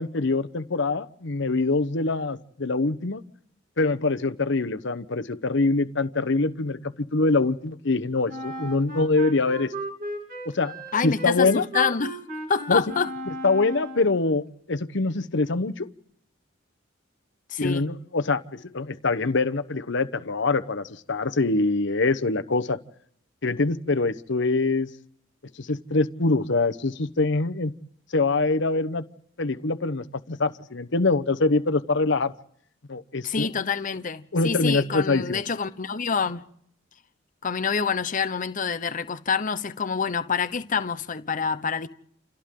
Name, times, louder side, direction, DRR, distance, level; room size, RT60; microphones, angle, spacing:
voice 1, 0.0-3.2 3.8-9.7 10.4-10.7 11.0-11.7 12.7-12.8 13.3-15.9 17.6-22.8 23.4-24.9 25.6-27.7 28.1-29.0 29.4-32.3 32.9-33.5 34.3-35.4, left 3 dB, 70° left, 1.0 m, -24 dB
Wind instrument woodwind instrument, 8.3-14.2, right 1 dB, 45° right, 3.4 m, -35 dB
voice 2, 10.9-12.2 12.5-13.1 17.5-17.9 33.2-36.4 37.4-41.9, left 5 dB, 45° left, 0.9 m, -27 dB
29.0 x 28.5 x 3.8 m
head